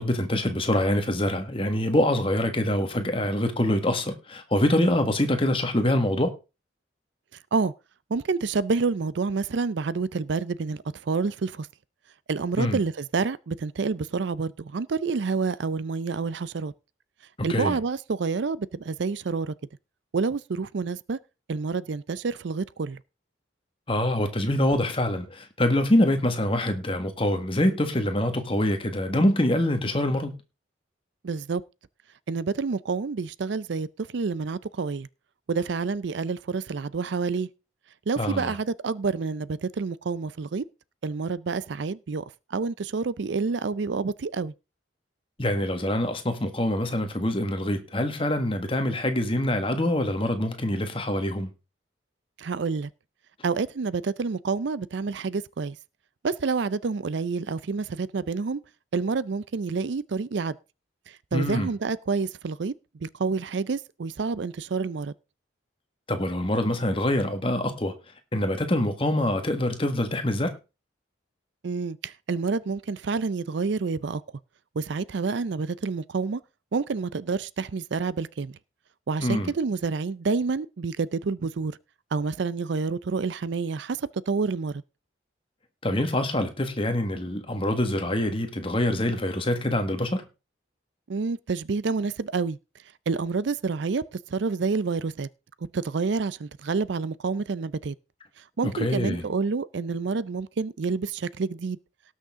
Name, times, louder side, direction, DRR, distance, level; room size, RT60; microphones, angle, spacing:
voice 1, 0.0-6.3 12.6-12.8 17.4-17.8 23.9-30.3 38.2-38.5 45.4-51.5 61.3-61.7 66.1-67.9 68.3-70.5 79.2-79.5 85.8-90.2 98.7-99.3, left 1 dB, 25° left, 1.6 m, -25 dB
voice 2, 8.1-11.7 12.3-16.7 17.4-19.5 20.1-21.2 21.5-23.0 31.2-31.6 32.3-35.1 35.5-37.5 38.1-40.6 41.0-42.2 42.5-44.5 52.4-52.9 53.4-55.8 56.2-58.6 58.9-60.6 61.1-62.7 63.0-65.1 71.6-74.2 74.8-76.4 76.7-78.6 79.1-81.7 82.1-84.7 91.1-92.6 93.1-94.0 94.3-95.3 95.7-97.9 98.4-101.8, right 4 dB, 65° right, 0.5 m, -28 dB
18.5 x 6.4 x 3.6 m
head